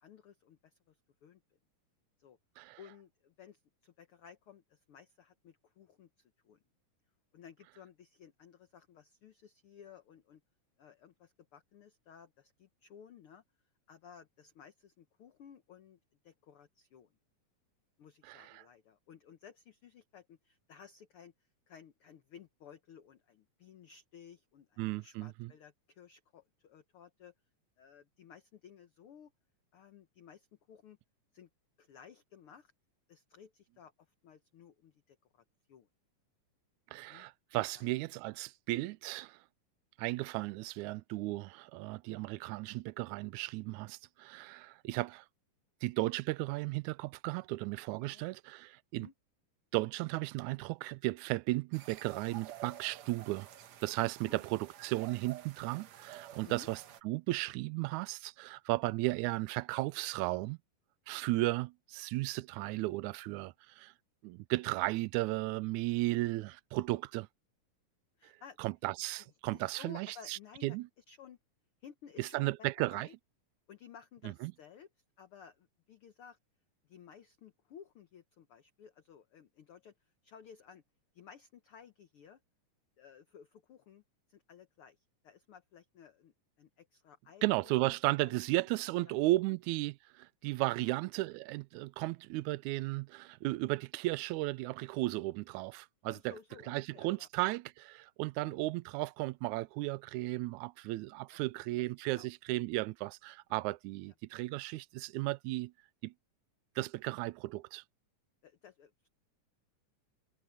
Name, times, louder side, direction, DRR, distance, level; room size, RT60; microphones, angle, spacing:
voice 1, 0.0-1.4 2.2-2.4 2.8-6.6 7.3-10.4 10.8-13.4 13.9-17.1 18.0-21.3 21.7-27.3 27.8-29.3 29.7-31.0 31.3-31.5 31.8-32.7 33.1-35.9 37.0-37.3 37.7-37.9 48.0-48.3 49.0-49.1 54.3-54.4 56.4-56.7 68.2-68.6 69.2-71.4 71.8-73.1 73.7-74.9 75.2-76.4 76.8-80.8 81.1-82.4 83.0-84.0 84.3-88.4 89.0-89.6 90.7-90.9 96.0-97.3 98.4-98.6 101.3-102.3 103.5-103.7 104.0-104.1 108.4-109.1, left 8 dB, 85° left, 1.2 m, -56 dB
voice 2, 18.3-18.6 24.8-25.5 36.9-39.4 40.0-45.3 45.8-49.1 49.7-53.5 53.8-60.6 61.1-63.9 64.2-67.3 68.6-70.9 72.2-73.1 74.4-74.5 87.4-96.3 96.7-105.7 106.0-106.1 106.8-107.8, right 20 dB, 85° right, 1.8 m, -35 dB
sound 1, 51.7-57.0, right 11 dB, 60° right, 2.1 m, -51 dB
omnidirectional pair, 3.9 m